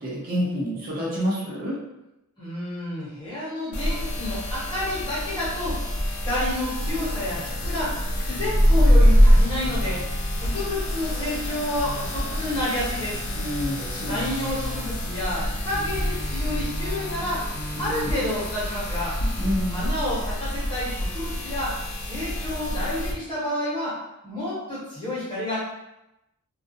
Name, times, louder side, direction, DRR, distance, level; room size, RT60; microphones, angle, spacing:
voice 1, 0.0-1.8 13.4-14.5 17.8-18.2 19.4-19.8, equal, 40° right, -6 dB, 0.6 m, -28 dB
voice 2, 2.4-5.8 6.2-8.0 8.2-10.0 10.3-13.2 14.0-17.4 17.8-19.2 19.7-21.8 22.0-24.0 24.2-25.6, left 1 dB, 20° left, -9 dB, 1.1 m, -30 dB
sound 1, 3.7-23.1, equal, 75° left, 0.5 m, -25 dB
sound 2, 6.8-17.9, equal, 60° right, 1.2 m, -40 dB
2.4 x 2.0 x 2.7 m, 0.90 s
head